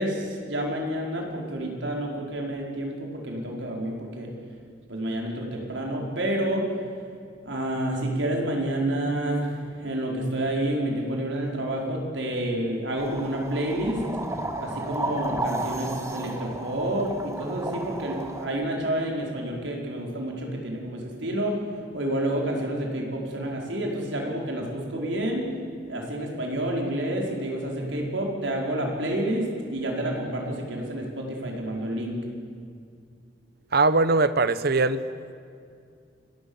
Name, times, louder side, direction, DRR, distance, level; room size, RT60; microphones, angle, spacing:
voice 1, 0.0-4.3 4.9-6.6 7.4-14.0 14.6-21.6 21.9-25.5 25.9-32.2, right 1 dB, 80° right, 0 dB, 5.1 m, -29 dB
sound 1, 13.0-18.5, right 2 dB, 15° right, 1.9 m, -33 dB
voice 2, 33.7-35.0, right 3 dB, 60° right, 14 dB, 1.0 m, -21 dB
29.5 x 19.5 x 7.2 m, 2.4 s
head